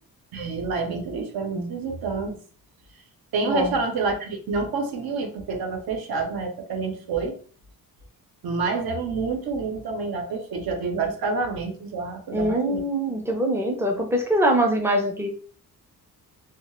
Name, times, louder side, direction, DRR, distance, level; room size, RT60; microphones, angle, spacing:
voice 1, 0.3-2.4 3.3-7.4 8.4-12.8, right 4 dB, 70° right, 3 dB, 0.6 m, -28 dB
voice 2, 12.3-15.3, right 1 dB, 5° right, 2 dB, 0.3 m, -23 dB
2.2 x 2.0 x 2.9 m, 0.43 s
wide cardioid pair, 140°, 38 cm